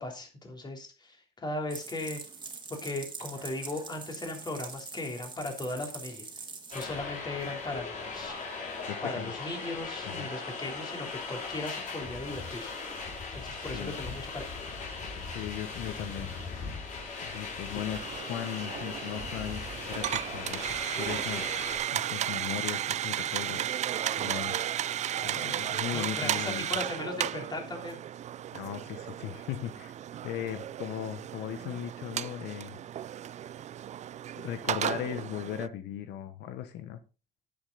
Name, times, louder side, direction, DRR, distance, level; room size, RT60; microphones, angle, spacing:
voice 1, 0.0-2.2 2.7-6.2 6.7-8.4 9.0-12.7 13.3-14.6 25.9-28.0, left 2 dB, 25° left, 2 dB, 3.3 m, -37 dB
sound 1, 1.7-6.9, right 4 dB, 25° right, 2.4 m, -43 dB
sound 2, 6.7-21.8, left 4 dB, 50° left, 5.0 m, -39 dB
voice 2, 8.9-9.3 10.0-10.3 13.7-14.0 15.3-16.8 17.2-18.0 18.3-20.6 21.0-21.6 21.9-23.7 24.2-24.6 25.2-26.7 28.5-29.9 30.2-32.8 34.4-37.0, left 11 dB, 85° left, 10 dB, 1.1 m, -37 dB
sound 3, 17.9-35.7, right 11 dB, 45° right, 0.4 m, -34 dB
9.9 x 8.2 x 4.0 m, 0.31 s
cardioid pair, 110°, 17 cm